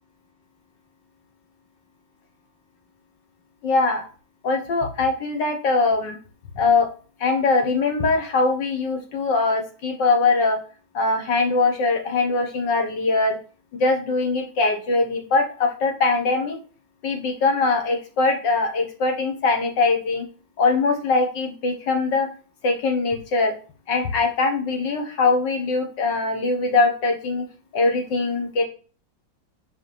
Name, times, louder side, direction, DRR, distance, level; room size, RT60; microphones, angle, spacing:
voice 1, 3.6-4.0 4.4-6.2 6.6-6.9 7.2-10.6 10.9-13.4 13.7-16.6 17.0-20.3 20.6-22.3 22.6-23.5 23.9-27.5 27.7-28.6, left 3 dB, 65° left, 4 dB, 1.8 m, -22 dB
5.3 x 5.1 x 4.7 m, 0.38 s
omnidirectional pair, 2.2 m